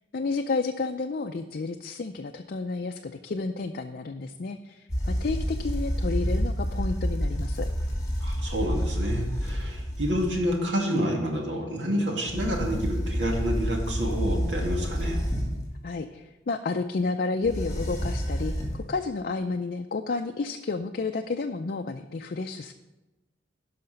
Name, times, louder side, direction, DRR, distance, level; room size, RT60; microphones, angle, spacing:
voice 1, 0.1-7.7 15.8-22.7, left 3 dB, 55° left, 5 dB, 0.5 m, -31 dB
sound 1, 4.9-10.5 12.3-15.7 17.4-18.9, equal, 20° left, 2.6 m, -29 dB
voice 2, 8.2-15.2, equal, 85° right, 0 dB, 2.3 m, -28 dB
11.5 x 5.8 x 5.2 m, 1.1 s
head